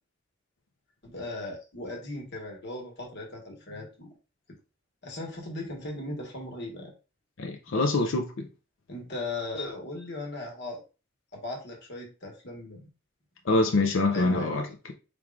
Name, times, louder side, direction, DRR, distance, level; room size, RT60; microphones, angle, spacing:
voice 1, 1.0-4.1 5.0-6.9 7.7-8.1 8.9-10.8 11.3-12.9 14.1-14.5, left 2 dB, 60° left, 1.3 m, -38 dB
voice 2, 7.4-8.5 13.5-14.7, left 2 dB, 80° left, 0.6 m, -25 dB
4.5 x 3.6 x 2.4 m
head